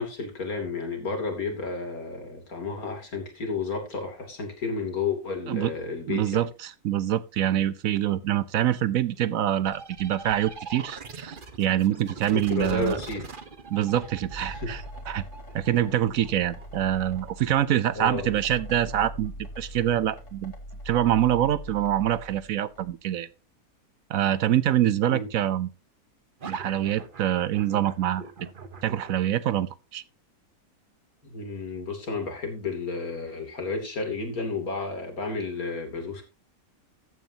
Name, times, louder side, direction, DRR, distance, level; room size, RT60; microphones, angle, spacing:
voice 1, 0.0-6.4 12.3-13.3 14.5-14.7 18.0-18.3 25.1-25.3 31.2-36.2, left 4 dB, 70° left, 3.3 m, -32 dB
voice 2, 6.1-13.0 13.7-15.2 15.5-20.5 20.9-23.3 24.1-25.7 26.4-28.2 28.8-30.0, right 11 dB, 70° right, 1.0 m, -25 dB
sound 1, 9.6-19.1 26.4-29.3, right 4 dB, 35° right, 1.2 m, -42 dB
sound 2, 14.3-22.9, equal, 55° left, 2.9 m, -42 dB
14.5 x 9.1 x 2.8 m
omnidirectional pair, 1.6 m